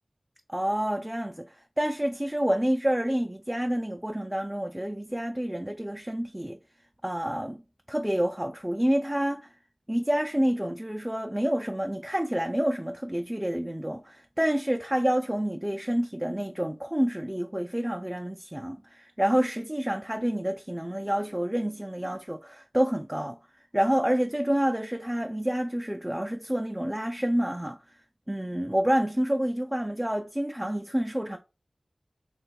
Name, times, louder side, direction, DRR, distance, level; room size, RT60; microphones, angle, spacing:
voice 1, 0.5-6.6 7.0-7.6 7.9-9.5 9.9-23.4 23.7-27.8 28.3-31.4, equal, 10° right, 0.3 m, -28 dB
3.0 x 2.3 x 4.1 m
wide cardioid pair, 65°, 0 cm